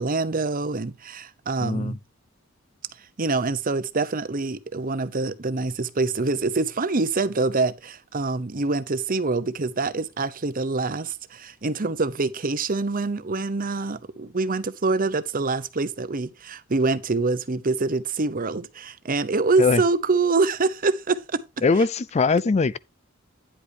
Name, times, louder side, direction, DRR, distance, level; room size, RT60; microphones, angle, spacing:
voice 1, 0.0-2.0 3.2-21.4, right 3 dB, 40° right, 0.8 m, -25 dB
voice 2, 1.6-2.0 19.6-19.8 21.6-22.8, left 4 dB, 30° left, 0.4 m, -21 dB
10.0 x 8.3 x 2.8 m
head